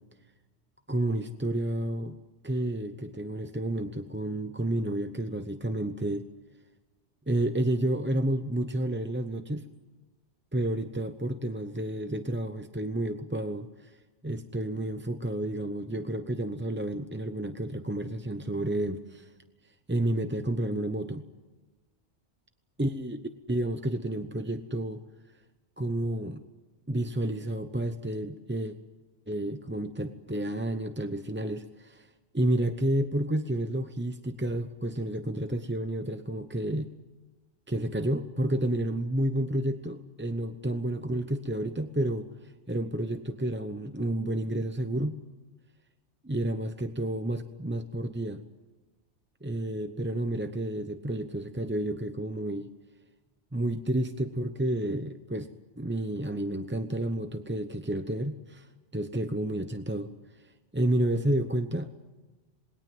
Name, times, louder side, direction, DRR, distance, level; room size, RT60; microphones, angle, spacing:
voice 1, 0.9-2.2 2.4-6.3 7.3-9.7 10.5-19.3 19.9-21.2 22.8-23.2 23.5-25.0 25.8-26.4 26.9-28.8 29.3-36.9 37.7-45.2 46.2-48.4 49.4-52.7 53.5-55.5 55.8-60.1 60.4-61.9, right 1 dB, 10° right, 8 dB, 0.7 m, -30 dB
27.5 x 21.0 x 7.8 m, 1.2 s
omnidirectional pair, 1.2 m